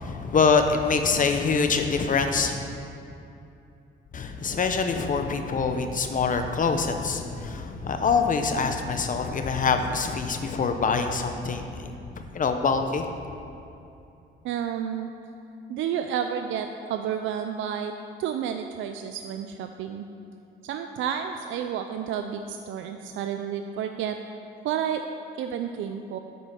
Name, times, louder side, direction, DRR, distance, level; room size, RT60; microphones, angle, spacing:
voice 1, 0.0-2.6 4.1-13.1, left 5 dB, 40° left, 6 dB, 0.8 m, -25 dB
voice 2, 14.4-15.1 15.7-17.9 18.2-20.1 20.6-24.2 24.6-25.0 25.4-26.2, right 8 dB, 80° right, 6 dB, 0.5 m, -30 dB
7.7 x 5.5 x 7.4 m, 2.7 s
cardioid pair, 90°, 20 cm